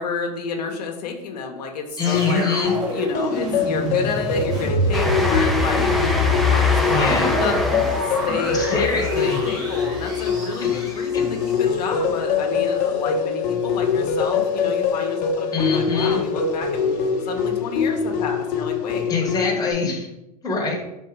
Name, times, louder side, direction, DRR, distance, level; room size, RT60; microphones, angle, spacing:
voice 1, 0.0-2.5 2.9-16.9 17.3-19.1, left 5 dB, 85° left, 2 dB, 0.8 m, -30 dB
sound 1, 1.9-12.0 12.6-12.7, left 2 dB, 20° right, 1.5 m, -26 dB
voice 2, 2.0-2.7 6.9-7.3 8.5-9.4 10.6-11.2 15.5-16.2 19.1-20.1 20.4-20.8, left 4 dB, 20° left, 0 dB, 1.0 m, -25 dB
sound 2, 2.1-19.7, left 6 dB, 45° left, 0.7 m, -24 dB
Train, 4.9-11.1, equal, ahead, 0.5 m, -27 dB
3.6 x 2.7 x 4.6 m, 0.91 s
hypercardioid pair, 115°, 20 cm